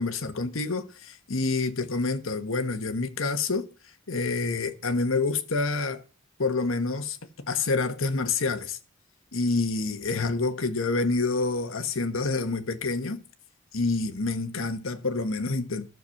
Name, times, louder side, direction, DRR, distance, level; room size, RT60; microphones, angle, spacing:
voice 1, 0.0-3.6 4.1-6.0 6.4-8.8 9.3-13.2 13.7-15.9, left 3 dB, 75° left, 1.3 m, -27 dB
13.0 x 6.9 x 5.8 m
head